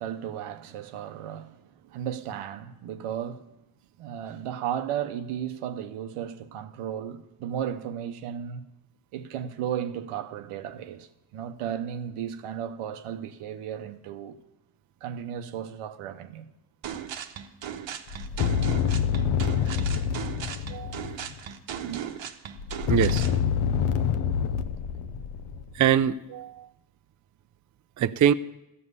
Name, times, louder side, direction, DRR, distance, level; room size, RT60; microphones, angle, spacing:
voice 1, 0.0-3.5 4.0-8.6 9.1-14.4 15.0-16.5 21.8-22.0, right 9 dB, 90° right, 0.9 m, -34 dB
sound 1, 16.8-23.4, right 8 dB, 65° right, 1.0 m, -37 dB
sound 2, 18.1-21.4 22.6-25.9, left 8 dB, 80° left, 0.8 m, -27 dB
voice 2, 20.7-21.1 22.9-23.3 25.8-26.7 28.0-28.3, right 9 dB, 40° right, 0.4 m, -23 dB
14.5 x 5.5 x 8.1 m
cardioid pair, 70°, 50 cm